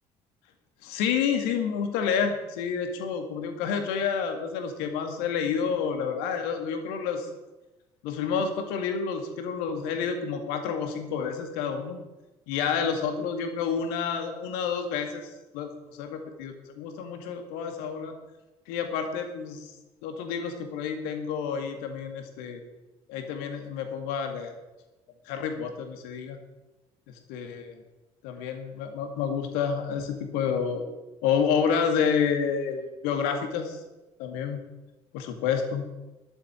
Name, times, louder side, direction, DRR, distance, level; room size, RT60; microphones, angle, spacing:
voice 1, 0.8-7.3 8.0-12.0 12.5-18.1 18.7-19.7 20.0-22.6 23.1-24.5 25.3-26.4 27.3-27.8 28.2-30.9 31.2-33.8 34.2-34.6 35.1-35.8, left 6 dB, 70° left, 6 dB, 2.1 m, -29 dB
11.5 x 8.3 x 8.8 m, 1.1 s
figure-of-eight pair, 50°, 17 cm